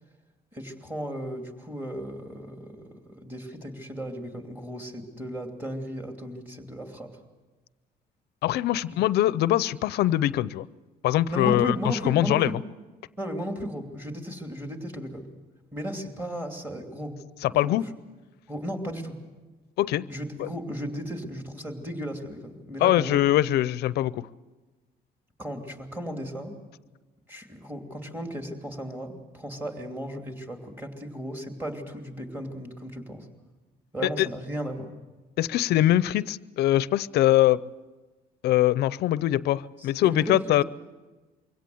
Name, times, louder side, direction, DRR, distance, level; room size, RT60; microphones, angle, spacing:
voice 1, 0.5-7.1 8.9-9.0 11.3-12.5 13.2-15.3 15.7-17.2 17.5-17.8 18.5-19.1 20.1-23.2 25.4-26.5 27.3-33.3 33.9-34.9 39.8-40.6, equal, 10° right, 4 dB, 2.8 m, -35 dB
voice 2, 8.4-10.7 11.0-12.5 17.4-17.8 19.8-20.1 20.4-20.5 22.8-24.2 34.2-34.3 35.4-37.6 38.4-40.6, left 14 dB, 75° left, 19 dB, 0.6 m, -23 dB
23.5 x 17.0 x 7.8 m, 1.2 s
cardioid pair, 110°, 17 cm